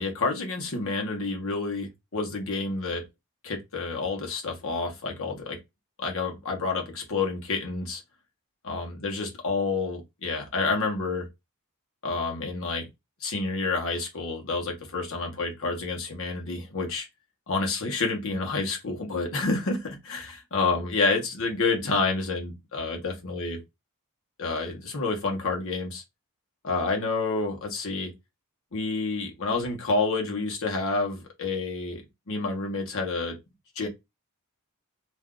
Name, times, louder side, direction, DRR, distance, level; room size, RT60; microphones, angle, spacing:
voice 1, 0.0-3.0 3.4-5.6 6.0-8.0 8.6-11.3 12.0-12.9 13.2-17.1 17.5-23.6 24.4-26.0 26.6-28.1 28.7-32.0 32.3-33.4 33.8-33.9, left 3 dB, 65° left, 1.0 m, -29 dB
2.6 x 2.3 x 3.6 m
head